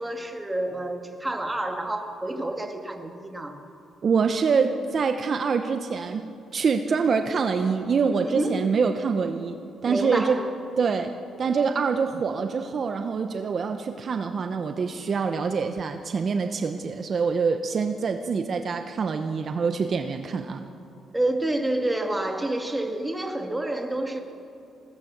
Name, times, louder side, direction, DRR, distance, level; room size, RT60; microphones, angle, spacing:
voice 1, 0.0-3.6 8.2-8.6 9.8-10.5 21.1-24.2, right 1 dB, 10° right, 4 dB, 2.2 m, -28 dB
voice 2, 4.0-10.4 10.8-20.7, right 5 dB, 50° right, 7 dB, 0.9 m, -25 dB
21.0 x 17.5 x 7.2 m, 2.7 s
cardioid pair, 90°, 0 cm